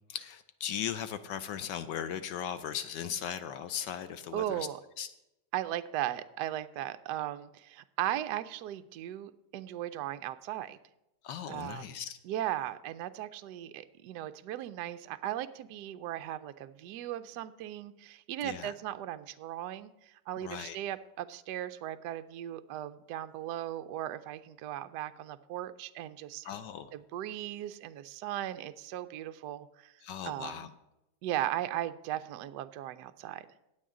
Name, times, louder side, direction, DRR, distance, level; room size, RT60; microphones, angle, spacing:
voice 1, 0.1-4.7 5.0-5.1 11.2-12.2 18.4-18.7 20.4-20.8 26.4-26.9 30.0-30.7, left 9 dB, 75° left, 11 dB, 1.1 m, -38 dB
voice 2, 4.3-4.8 5.5-10.8 11.5-11.9 12.2-19.9 20.3-26.5 26.9-29.9 30.2-30.6 31.2-33.5, right 13 dB, 85° right, 10 dB, 0.9 m, -37 dB
16.5 x 8.5 x 3.7 m, 0.91 s
omnidirectional pair, 2.3 m